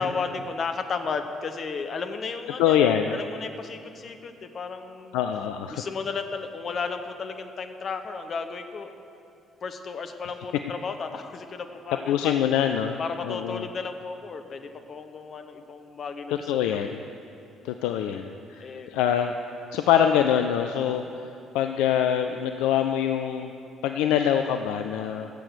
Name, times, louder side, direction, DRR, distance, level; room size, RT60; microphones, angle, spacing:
voice 1, 0.0-5.2 5.7-8.9 9.6-12.3 13.0-17.0 18.6-18.9, left 5 dB, 45° left, 7 dB, 0.9 m, -34 dB
voice 2, 2.6-3.2 5.1-5.8 12.1-13.0 13.2-13.6 16.5-17.0 17.6-19.3 19.7-21.0 21.5-23.5 23.8-25.3, left 9 dB, 65° left, 7 dB, 0.4 m, -24 dB
15.0 x 7.8 x 6.8 m, 2.7 s
figure-of-eight pair, 45°, 0 cm